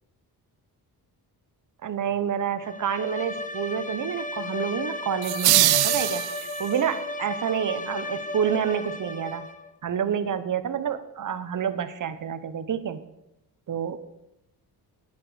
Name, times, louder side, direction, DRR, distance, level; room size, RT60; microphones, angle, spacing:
voice 1, 1.8-6.2 6.6-9.5 9.8-13.0 13.7-14.0, right 8 dB, 50° right, 12 dB, 0.8 m, -28 dB
Bowed string instrument, 2.6-9.7, left 2 dB, 20° left, 0.7 m, -34 dB
sound 1, 5.2-6.8, right 15 dB, 70° right, 0.5 m, -22 dB
9.9 x 9.0 x 4.8 m, 0.91 s
cardioid pair, 110°, 39 cm